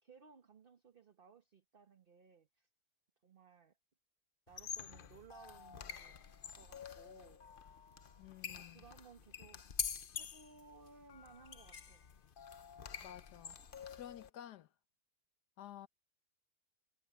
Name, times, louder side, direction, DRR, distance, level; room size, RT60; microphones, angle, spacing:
voice 1, 0.0-2.7 3.2-3.8 4.5-6.3 6.5-7.4 8.5-9.6 10.2-12.1, right 5 dB, 35° right, 1.4 m, -60 dB
sound 1, 4.5-14.3, left 7 dB, 45° left, 0.8 m, -47 dB
voice 2, 8.2-8.8 13.0-13.6 13.9-14.7 15.6-15.9, left 11 dB, 85° left, 1.5 m, -52 dB
omnidirectional pair, 1.7 m